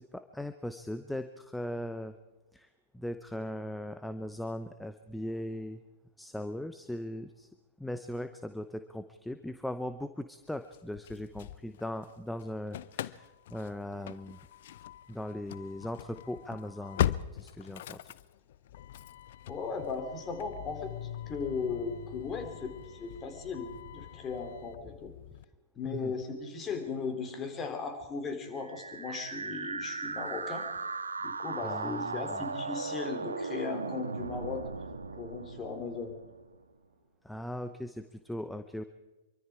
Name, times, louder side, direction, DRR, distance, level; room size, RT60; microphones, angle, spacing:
voice 1, 0.0-2.2 2.5-5.8 6.2-7.5 7.8-14.4 15.1-18.0 25.9-26.1 31.6-32.4 37.2-38.8, left 1 dB, 5° left, 10 dB, 0.8 m, -39 dB
Engine starting / Slam, 10.7-12.1 12.4-25.4, left 12 dB, 50° left, 0.7 m, -40 dB
voice 2, 19.5-22.7 23.0-25.1 25.8-30.7 31.2-34.6 35.1-36.1, left 4 dB, 20° left, 6 dB, 3.8 m, -37 dB
sound 1, 28.6-36.5, right 4 dB, 75° right, 1.9 m, -38 dB
26.0 x 24.0 x 4.8 m, 1.2 s
figure-of-eight pair, 105°, 0 cm